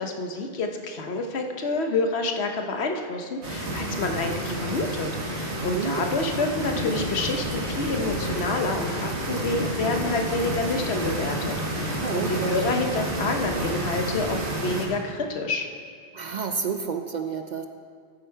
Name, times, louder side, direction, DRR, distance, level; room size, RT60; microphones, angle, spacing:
voice 1, 0.0-15.7, left 3 dB, 75° left, 4 dB, 1.2 m, -28 dB
sound 1, 3.4-14.9, right 1 dB, 85° right, 1.8 m, -30 dB
Wild animals, 6.2-8.7 9.2-11.7, left 5 dB, 50° left, 0.3 m, -38 dB
voice 2, 12.0-12.6 16.1-17.7, right 6 dB, 55° right, 6 dB, 0.6 m, -29 dB
13.0 x 7.7 x 4.6 m, 2.1 s
omnidirectional pair, 1.1 m